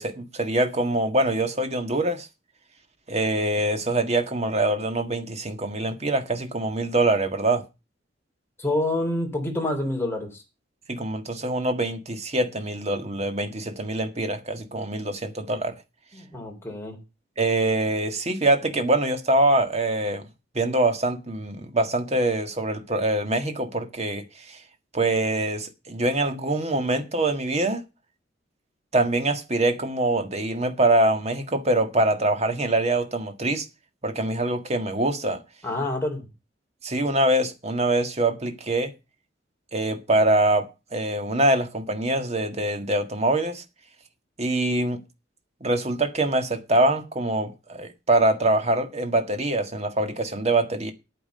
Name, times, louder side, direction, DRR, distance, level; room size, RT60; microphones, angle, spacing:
voice 1, 0.0-2.3 3.1-7.6 10.9-15.7 17.4-20.3 20.5-24.6 24.9-27.8 28.9-33.6 34.0-35.4 36.8-38.9 39.7-43.6 44.4-45.0 45.6-50.9, right 2 dB, 35° right, 1.7 m, -24 dB
voice 2, 8.6-10.4 16.1-17.0 35.6-36.3, left 1 dB, 15° left, 3.7 m, -27 dB
9.6 x 9.2 x 6.6 m
head